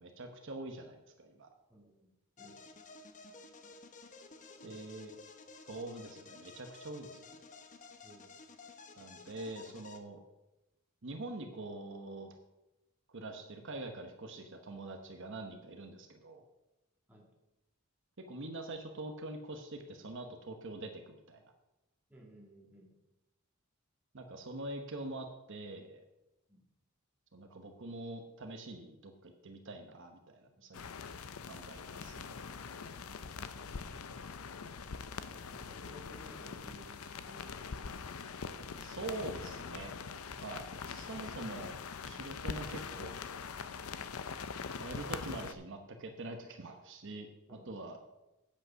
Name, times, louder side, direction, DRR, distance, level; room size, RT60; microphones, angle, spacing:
voice 1, 0.0-1.5 4.6-5.1 5.7-7.2 9.0-10.2 11.0-12.3 13.1-16.4 18.3-21.4 24.1-26.0 27.3-30.8 31.5-32.3 38.8-39.9 40.4-43.2 44.8-48.0, right 2 dB, 60° right, 5 dB, 1.0 m, -44 dB
voice 2, 1.7-2.1 2.4-2.6 4.6-4.8 8.0-8.3 17.1-17.3 22.1-22.9 26.5-26.6 30.5-30.8 32.9-33.8 35.5-37.9 43.9-44.1 47.5-47.9, equal, 10° right, -3 dB, 2.4 m, -57 dB
sound 1, 2.4-10.0, left 3 dB, 35° left, 0.9 m, -53 dB
sound 2, 30.7-45.5, left 5 dB, 90° left, 0.7 m, -43 dB
8.8 x 8.0 x 6.2 m, 0.98 s
head